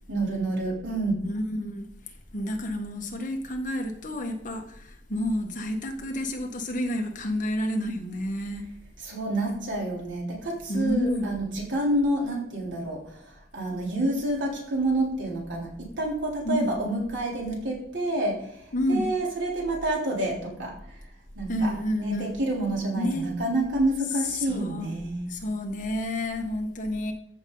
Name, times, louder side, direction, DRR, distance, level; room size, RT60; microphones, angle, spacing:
voice 1, 0.1-1.2 9.0-21.0 21.4-25.3, right 1 dB, 85° right, -3 dB, 3.6 m, -28 dB
voice 2, 1.2-1.9 2.3-8.7 10.7-11.3 16.4-16.7 18.7-19.1 21.5-22.3 23.0-23.3 24.4-24.9 25.3-27.1, left 1 dB, 45° left, 4 dB, 1.4 m, -29 dB
14.0 x 6.8 x 3.9 m, 0.74 s
head